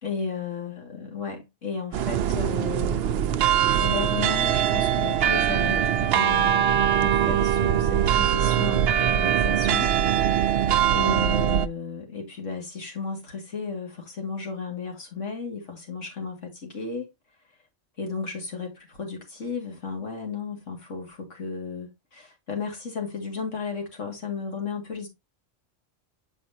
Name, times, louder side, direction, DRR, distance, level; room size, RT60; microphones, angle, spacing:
voice 1, 0.0-3.4 3.7-9.9 10.9-17.1 18.0-25.1, left 5 dB, 70° left, 2.4 m, -34 dB
sound 1, 1.9-11.7, right 10 dB, 65° right, 0.7 m, -22 dB
7.7 x 5.0 x 2.7 m
omnidirectional pair, 1.3 m